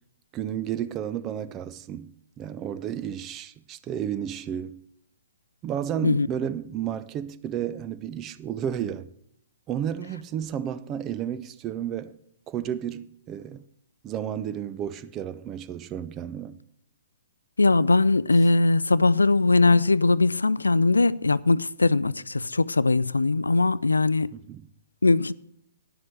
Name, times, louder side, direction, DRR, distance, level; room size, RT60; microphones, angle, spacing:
voice 1, 0.3-4.8 5.6-9.1 9.7-12.1 12.5-13.6 14.0-16.6 24.3-24.6, right 9 dB, 20° right, 0.5 m, -32 dB
voice 2, 17.6-24.3 25.0-25.3, left 3 dB, 75° left, 0.3 m, -20 dB
10.5 x 7.4 x 6.5 m
figure-of-eight pair, 120°, 0 cm